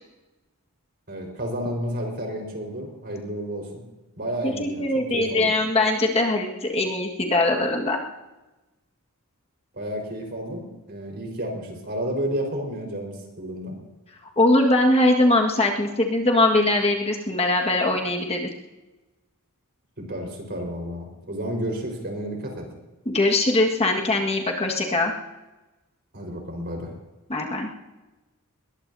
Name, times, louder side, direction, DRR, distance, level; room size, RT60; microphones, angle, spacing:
voice 1, 1.1-3.7 4.2-4.9 5.1-5.5 9.7-13.8 20.0-22.7 26.1-26.9, equal, 45° right, 1 dB, 4.6 m, -31 dB
voice 2, 4.4-8.0 14.4-18.5 23.1-25.1 27.3-27.7, left 2 dB, 30° left, 0 dB, 1.7 m, -21 dB
21.5 x 20.0 x 2.8 m, 1.1 s
head